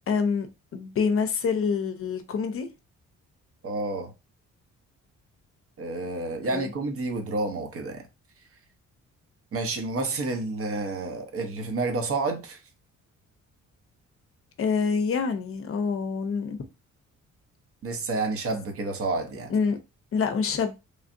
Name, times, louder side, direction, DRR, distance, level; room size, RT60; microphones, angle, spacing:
voice 1, 0.1-0.5 0.7-2.7 6.5-6.7 14.6-16.6 19.5-19.8 20.1-20.9, left 5 dB, 50° left, 0.6 m, -26 dB
voice 2, 3.6-4.1 5.8-8.1 9.5-12.6 17.8-19.5, right 3 dB, 50° right, 0.8 m, -29 dB
3.2 x 2.4 x 2.6 m
cardioid pair, 90°, 30 cm